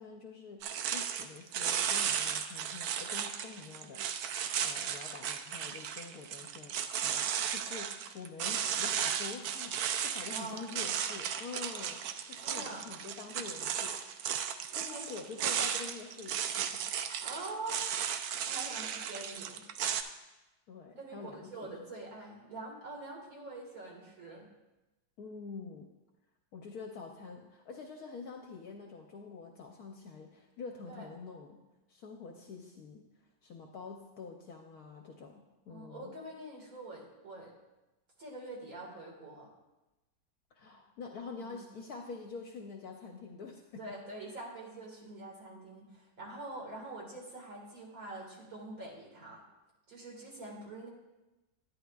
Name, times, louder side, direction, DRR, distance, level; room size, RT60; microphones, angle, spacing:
voice 1, 0.0-4.0 4.4-12.0 12.3-14.0 14.7-16.6 20.7-21.7 25.2-25.9 26.5-31.6 31.9-33.0 33.4-35.3 35.7-36.1 40.5-43.8, left 4 dB, 65° left, 2 dB, 1.0 m, -46 dB
sound 1, 0.6-20.0, right 8 dB, 75° right, 0.9 m, -35 dB
voice 2, 10.3-10.7 12.4-12.9 14.7-15.0 17.2-17.9 18.5-19.6 20.9-24.5 30.9-31.1 35.7-37.5 38.2-39.5 41.4-41.6 43.8-49.4 49.9-50.9, right 2 dB, 50° right, -3 dB, 2.2 m, -45 dB
11.0 x 10.0 x 2.3 m, 1.0 s
omnidirectional pair, 2.0 m